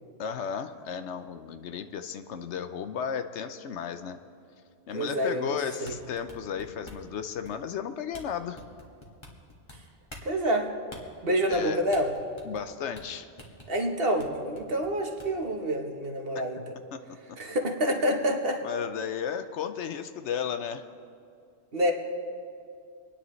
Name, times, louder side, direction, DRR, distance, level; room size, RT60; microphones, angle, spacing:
voice 1, 0.2-4.2 4.9-8.6 11.5-11.8 12.4-13.3 16.3-16.4 16.9-17.0 18.6-20.9, left 7 dB, 80° left, 10 dB, 1.0 m, -34 dB
voice 2, 4.9-5.6 5.8-5.9 10.2-10.7 11.2-12.1 13.7-16.7 17.4-18.6 21.7-21.9, equal, 55° right, 3 dB, 1.3 m, -27 dB
sound 1, 5.9-7.1 7.4-7.8 8.1-8.3 8.6-9.8 10.1-10.3 10.9-11.0 11.5-11.7 11.9-12.7 13.0-13.1 13.4-13.7 14.2-14.3 14.5-15.5, left 1 dB, 25° left, 1.7 m, -46 dB
26.0 x 10.0 x 3.2 m, 2.4 s
omnidirectional pair, 1.2 m